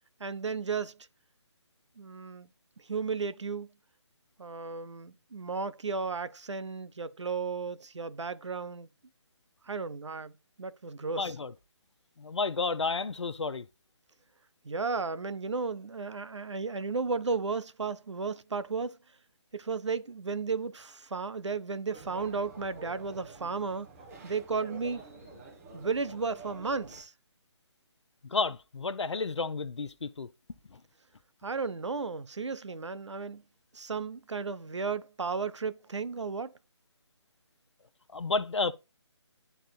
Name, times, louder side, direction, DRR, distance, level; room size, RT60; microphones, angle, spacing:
voice 1, 0.2-1.0 2.0-2.5 2.8-3.7 4.4-8.9 9.6-10.3 10.6-11.4 14.6-19.0 19.5-23.9 24.2-25.0 25.7-27.1 31.4-33.4 33.7-36.5, right 4 dB, 85° right, 0.6 m, -34 dB
voice 2, 11.2-11.5 12.2-13.7 28.3-30.3 30.7-30.8 38.1-38.7, left 4 dB, 85° left, 0.6 m, -31 dB
sound 1, 21.9-27.0, right 2 dB, 30° right, 1.7 m, -49 dB
11.0 x 3.8 x 2.2 m
figure-of-eight pair, 155°, 15 cm